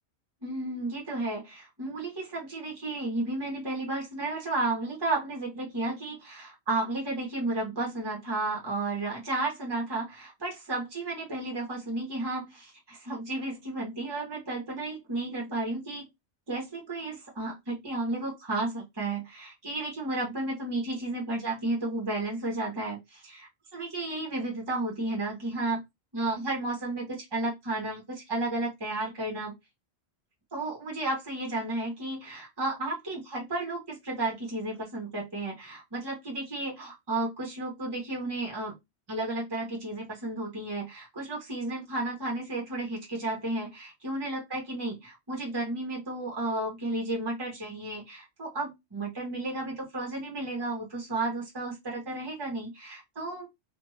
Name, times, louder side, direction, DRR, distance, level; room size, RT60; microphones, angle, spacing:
voice 1, 0.4-16.0 16.5-25.8 26.1-29.5 30.5-38.7 39.1-53.5, right 2 dB, 25° right, -2 dB, 1.1 m, -33 dB
2.6 x 2.3 x 3.1 m, 0.19 s
omnidirectional pair, 1.1 m